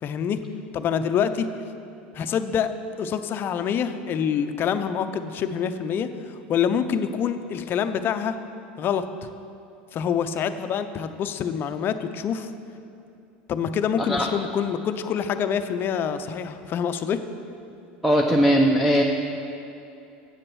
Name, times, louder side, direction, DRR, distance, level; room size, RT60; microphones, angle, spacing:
voice 1, 0.0-0.4 0.7-1.5 2.1-8.4 8.8-9.1 9.9-12.5 13.5-17.2, left 7 dB, 40° left, 9 dB, 0.6 m, -26 dB
voice 2, 18.0-19.0, equal, ahead, 0 dB, 0.7 m, -19 dB
8.2 x 7.6 x 6.2 m, 2.7 s
hypercardioid pair, 95°, 5 cm